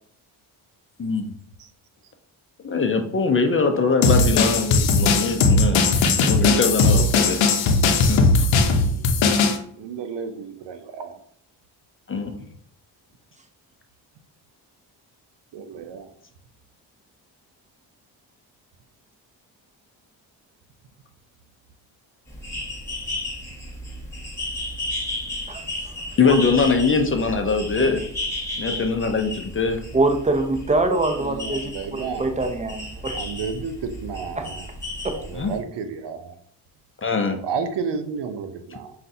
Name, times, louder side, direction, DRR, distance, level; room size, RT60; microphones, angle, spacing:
voice 1, 1.0-1.3 2.6-5.9 6.2-7.4 8.1-8.3 12.1-12.3 26.2-28.0 28.6-29.8 35.4-35.5 37.0-37.4, left 4 dB, 30° left, 5 dB, 0.6 m, -22 dB
sound 1, 4.0-9.6, left 3 dB, 75° left, 0.7 m, -18 dB
voice 2, 8.7-11.2 15.5-16.1 31.2-32.2 33.1-34.7 35.3-36.3 37.4-38.9, right 5 dB, 65° right, 8 dB, 0.6 m, -32 dB
sound 2, 22.3-35.6, left 1 dB, 5° left, 1.3 m, -33 dB
voice 3, 25.5-25.9 26.2-26.4 27.8-28.0 29.9-33.2 34.4-34.5 35.0-35.2, right 2 dB, 15° right, 5 dB, 0.6 m, -24 dB
5.4 x 2.4 x 2.6 m, 0.64 s
cardioid pair, 75°, 46 cm